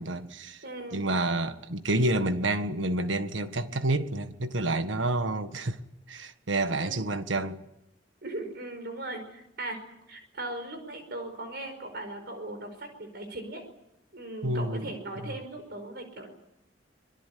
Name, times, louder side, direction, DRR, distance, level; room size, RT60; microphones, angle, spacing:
voice 1, 0.0-0.6 0.9-5.8 6.1-7.6 14.4-14.9, right 2 dB, 75° right, 1.6 m, -29 dB
voice 2, 0.6-1.1 1.9-2.1 6.8-7.0 8.2-9.8 10.1-13.6 14.1-16.3, right 2 dB, 60° right, 5.0 m, -38 dB
26.0 x 22.5 x 8.6 m
head